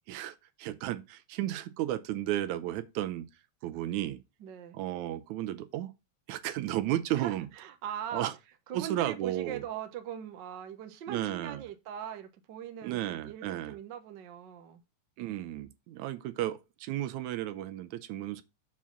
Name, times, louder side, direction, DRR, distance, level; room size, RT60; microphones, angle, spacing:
voice 1, 0.1-3.3 3.6-4.2 4.7-5.9 6.3-7.5 8.1-8.3 8.7-9.6 11.1-11.6 12.8-13.8 15.2-18.4, right 13 dB, 80° right, 2.1 m, -33 dB
voice 2, 4.4-4.8 7.1-8.3 8.7-14.8, right 9 dB, 55° right, 1.3 m, -41 dB
7.1 x 4.8 x 5.8 m
omnidirectional pair, 3.4 m